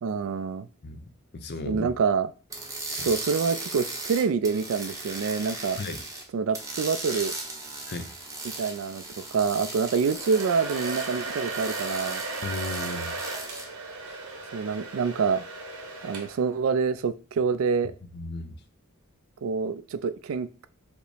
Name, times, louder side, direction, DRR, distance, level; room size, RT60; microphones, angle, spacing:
voice 1, 0.0-0.7 1.7-2.3 2.9-5.8 6.3-7.3 8.6-9.0 9.3-12.2 14.5-15.4 16.0-17.9 19.4-20.7, right 5 dB, 65° right, 0.3 m, -26 dB
voice 2, 1.3-1.9 3.0-3.1 5.8-6.0 7.9-8.1 12.4-13.2 14.0-14.2 18.1-18.5, left 2 dB, 50° left, 0.5 m, -35 dB
sound 1, 2.5-6.2 6.5-13.6, right 2 dB, 15° right, 0.7 m, -37 dB
Domestic sounds home sounds, 9.9-16.6, right 3 dB, 90° right, 0.9 m, -36 dB
5.2 x 2.0 x 4.8 m
head